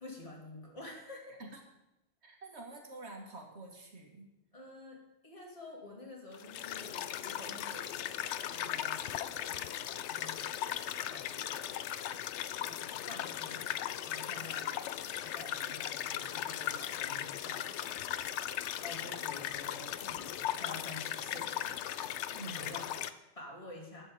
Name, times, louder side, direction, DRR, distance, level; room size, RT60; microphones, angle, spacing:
voice 1, 0.0-1.4 4.5-8.1 8.4-11.8 12.6-21.8 22.5-24.0, left 2 dB, 30° left, -2 dB, 2.6 m, -50 dB
voice 2, 2.2-4.3 22.3-22.8, right 2 dB, 75° right, 2 dB, 2.1 m, -48 dB
sound 1, 6.3-23.1, left 11 dB, 90° left, 0.9 m, -38 dB
12.0 x 5.0 x 8.5 m, 0.93 s
omnidirectional pair, 1.1 m